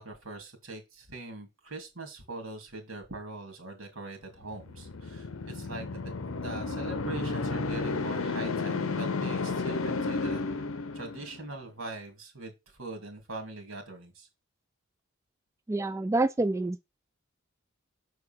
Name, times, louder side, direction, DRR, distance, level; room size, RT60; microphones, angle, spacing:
voice 1, 0.0-6.1 6.4-10.4 10.9-14.3, right 2 dB, 90° right, 3.0 m, -42 dB
sound 1, 4.5-11.5, left 3 dB, 85° left, 0.8 m, -32 dB
voice 2, 15.7-16.8, right 2 dB, 15° right, 0.3 m, -27 dB
6.8 x 4.7 x 4.5 m
head